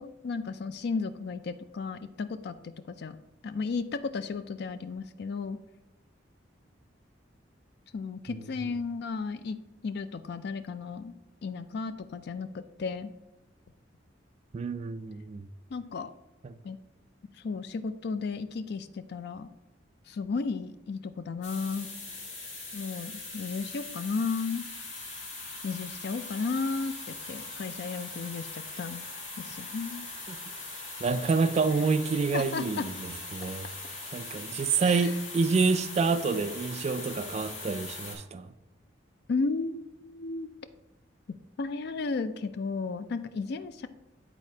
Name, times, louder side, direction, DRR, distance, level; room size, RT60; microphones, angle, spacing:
voice 1, 0.0-2.6 3.0-3.2 3.4-5.6 7.9-9.6 9.8-11.2 11.4-13.1 15.7-16.1 16.6-16.8 17.4-19.5 20.1-21.9 22.7-24.7 25.6-29.0 29.4-30.1 32.3-32.9 33.4-33.5 34.8-35.1 39.3-40.5 41.6-43.9, left 4 dB, 60° left, 0.4 m, -34 dB
voice 2, 14.5-15.5 16.4-16.6 30.3-30.4 31.0-33.7 34.1-38.5, right 4 dB, 35° right, 0.3 m, -28 dB
sound 1, 21.4-38.1, left 3 dB, 40° left, 2.2 m, -41 dB
9.7 x 4.1 x 2.7 m
head